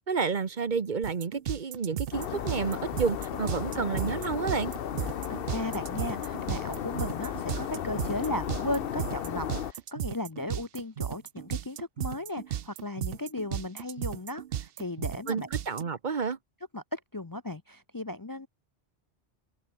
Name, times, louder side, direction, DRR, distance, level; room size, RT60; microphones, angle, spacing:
voice 1, 0.0-4.7 15.3-16.4, right 5 dB, 50° right, 1.1 m, -30 dB
sound 1, 1.0-15.8, right 10 dB, 65° right, 0.8 m, -35 dB
sound 2, 2.1-9.7, left 9 dB, 65° left, 0.9 m, -34 dB
voice 2, 5.3-15.5 16.7-18.5, left 2 dB, 25° left, 0.6 m, -36 dB
omnidirectional pair, 1.1 m